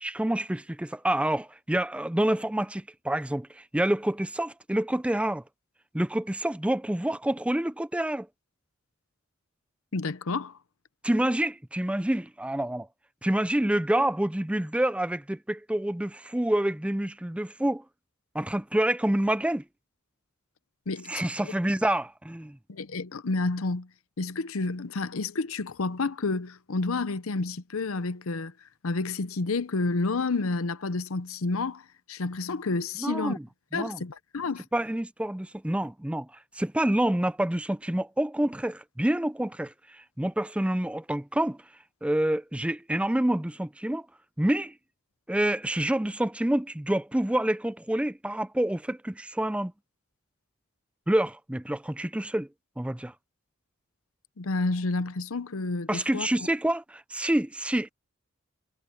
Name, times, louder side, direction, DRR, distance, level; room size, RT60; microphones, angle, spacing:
voice 1, 0.0-5.4 5.9-8.3 11.0-12.9 13.2-17.8 18.3-19.6 21.1-22.6 33.0-33.5 33.7-34.0 34.7-36.3 36.5-41.6 42.0-44.1 44.4-44.7 45.3-49.7 51.1-52.5 52.8-53.1 55.9-57.9, right 1 dB, 5° right, 0.4 m, -27 dB
voice 2, 9.9-10.6 20.9-21.1 21.4-21.5 22.7-23.9 24.2-28.5 28.8-33.4 33.7-34.6 54.4-56.3, left 3 dB, 80° left, 0.8 m, -30 dB
head